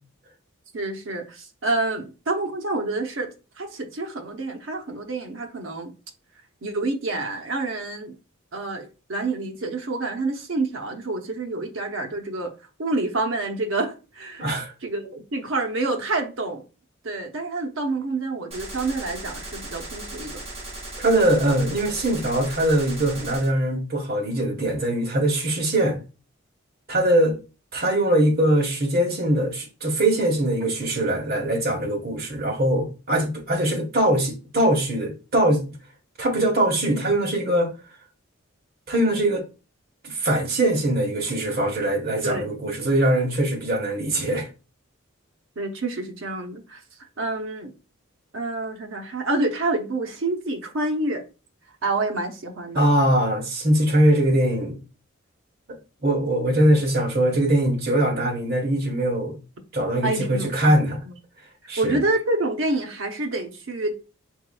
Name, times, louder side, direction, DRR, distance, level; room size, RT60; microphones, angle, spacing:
voice 1, 0.7-5.9 6.6-8.1 8.5-12.5 12.8-14.5 14.8-16.6 17.0-20.4 42.2-42.9 45.6-46.8 47.2-47.7 48.3-51.2 51.8-52.8 60.0-61.1 61.8-63.9, right 2 dB, 65° right, 0.8 m, -28 dB
voice 2, 14.4-14.7 21.0-26.0 26.9-27.4 27.7-35.6 36.2-37.7 38.9-39.4 40.0-44.5 52.7-54.8 56.0-59.4 59.7-61.0 61.7-62.0, right 1 dB, 45° right, 1.3 m, -22 dB
Gunshot gunfire, 18.5-23.5, right 2 dB, 30° right, 1.2 m, -37 dB
4.6 x 4.2 x 2.3 m
head